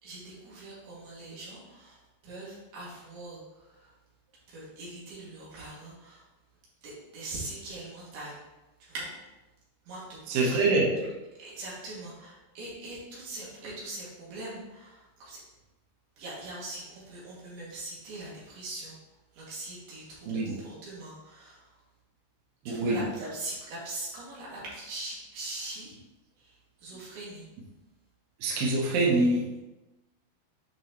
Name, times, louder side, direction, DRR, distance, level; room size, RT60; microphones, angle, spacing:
voice 1, 0.0-3.9 4.5-6.2 6.8-8.4 8.8-9.1 9.9-10.7 11.4-15.4 16.2-19.0 19.3-21.8 22.7-26.0 26.4-27.5, right 2 dB, 55° right, -7 dB, 3.7 m, -42 dB
voice 2, 10.3-11.0 20.3-20.6 22.7-23.0 28.4-29.5, right 2 dB, 85° right, -2 dB, 2.0 m, -25 dB
9.7 x 5.0 x 3.1 m, 1.0 s
omnidirectional pair, 5.8 m